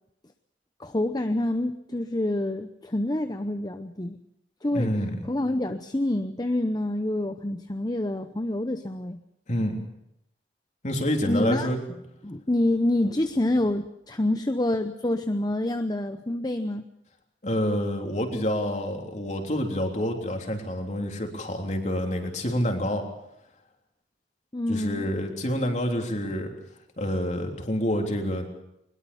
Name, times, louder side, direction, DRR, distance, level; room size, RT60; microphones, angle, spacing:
voice 1, 0.8-4.2 4.6-4.9 5.3-9.2 11.3-11.7 12.2-16.9 24.5-25.1, left 1 dB, 25° left, 9 dB, 0.7 m, -27 dB
voice 2, 4.7-5.1 9.5-9.8 10.8-11.8 17.4-23.0 24.7-26.5 27.0-28.5, equal, 40° left, 3 dB, 3.5 m, -27 dB
21.5 x 21.0 x 7.1 m, 0.79 s
head